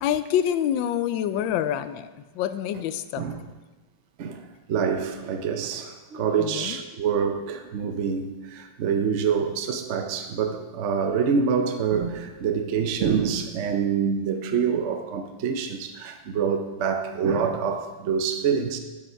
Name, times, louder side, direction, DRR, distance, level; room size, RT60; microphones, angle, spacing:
voice 1, 0.0-2.1 2.3-3.3 6.4-6.8, left 10 dB, 80° left, 1.3 m, -26 dB
voice 2, 4.7-18.8, right 6 dB, 65° right, 0.7 m, -26 dB
11.5 x 6.9 x 4.5 m
omnidirectional pair, 2.2 m